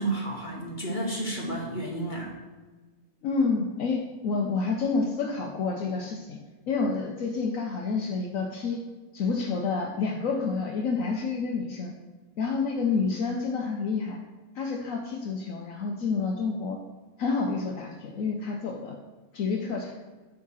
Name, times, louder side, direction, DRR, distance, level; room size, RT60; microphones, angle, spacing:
voice 1, 0.0-2.3, right 2 dB, 35° left, -1 dB, 1.3 m, -31 dB
voice 2, 3.2-6.4 6.7-8.8 9.1-11.9 12.4-14.2 14.5-16.8 17.2-19.0 19.3-19.9, left 4 dB, 70° left, 1 dB, 1.1 m, -29 dB
9.3 x 3.7 x 6.2 m, 1.3 s
omnidirectional pair, 1.5 m